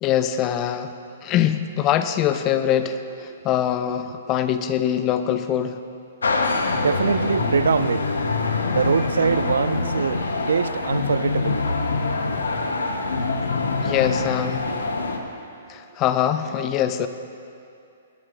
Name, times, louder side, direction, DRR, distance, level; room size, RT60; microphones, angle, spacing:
voice 1, 0.0-0.9 1.2-5.8 13.8-14.7 15.7-17.1, left 10 dB, 30° left, 11 dB, 0.6 m, -23 dB
sound 1, 6.2-15.2, left 3 dB, 75° left, 0.9 m, -24 dB
voice 2, 6.7-8.1 8.7-11.6, right 6 dB, 70° right, 15 dB, 0.3 m, -23 dB
18.0 x 7.7 x 3.9 m, 2.5 s
figure-of-eight pair, 120°, 0 cm